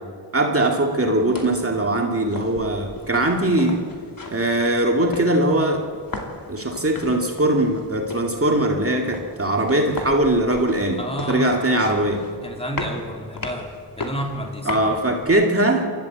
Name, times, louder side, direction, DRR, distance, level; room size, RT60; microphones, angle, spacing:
voice 1, 0.3-3.8 4.3-5.8 6.5-11.0 11.3-12.2 14.7-15.9, right 1 dB, 35° right, 1 dB, 2.2 m, -21 dB
sound 1, 1.0-15.2, left 2 dB, 55° left, 2.7 m, -37 dB
voice 2, 11.0-14.8, equal, 15° left, 1 dB, 2.9 m, -31 dB
28.5 x 13.5 x 8.1 m, 2.2 s
wide cardioid pair, 90°, 42 cm